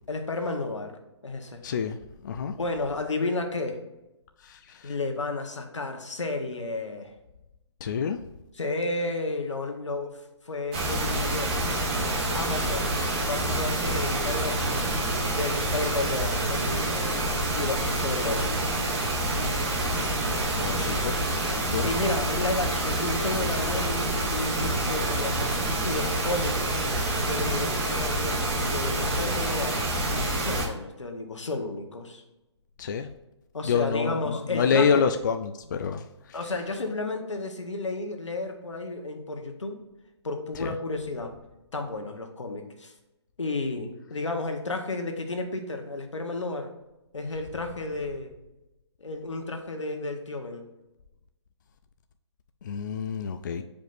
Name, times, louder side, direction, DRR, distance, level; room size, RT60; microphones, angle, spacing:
voice 1, 0.1-1.0 1.2-1.6 2.5-3.8 4.8-7.1 8.6-11.6 12.3-12.9 13.2-14.8 15.3-18.5 21.8-25.5 25.8-26.8 27.2-29.8 30.4-32.2 33.5-35.1 36.3-39.8 40.2-41.3 41.7-42.9 43.4-46.7 47.1-48.3 49.0-50.6, left 2 dB, 90° left, 4 dB, 1.3 m, -32 dB
voice 2, 1.6-2.6 4.4-4.9 7.8-8.2 20.6-21.9 32.8-33.1 33.6-36.4 40.6-40.8 52.6-53.6, left 6 dB, 40° left, 7 dB, 0.4 m, -28 dB
sound 1, 10.7-30.7, right 1 dB, 25° right, 1.3 m, -27 dB
7.6 x 5.1 x 2.6 m, 0.97 s
hypercardioid pair, 155°, 15 cm